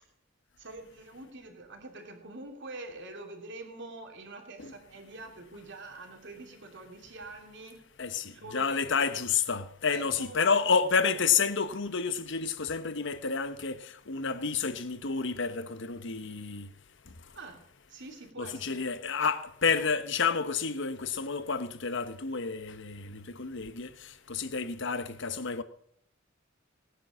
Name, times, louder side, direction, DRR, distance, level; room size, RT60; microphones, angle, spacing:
voice 1, 0.6-7.8 8.3-9.0 9.9-10.6 17.3-17.6 17.9-18.9, right 2 dB, 60° right, 2.9 m, -45 dB
voice 2, 8.0-13.8 14.1-16.7 18.4-23.9 24.3-25.6, left 5 dB, 65° left, 1.1 m, -30 dB
18.5 x 10.0 x 6.4 m
head